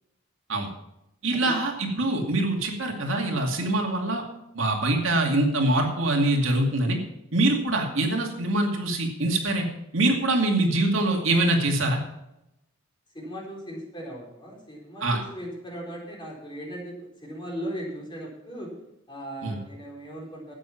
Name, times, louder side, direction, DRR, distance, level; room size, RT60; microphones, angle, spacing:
voice 1, 1.2-4.2 4.5-7.0 7.3-9.7 9.9-12.0 15.0-15.2 19.4-19.6, right 2 dB, 65° right, 1 dB, 2.4 m, -24 dB
voice 2, 13.1-18.7 19.1-20.5, equal, 20° left, -2 dB, 4.1 m, -38 dB
12.5 x 8.6 x 5.8 m, 0.85 s
head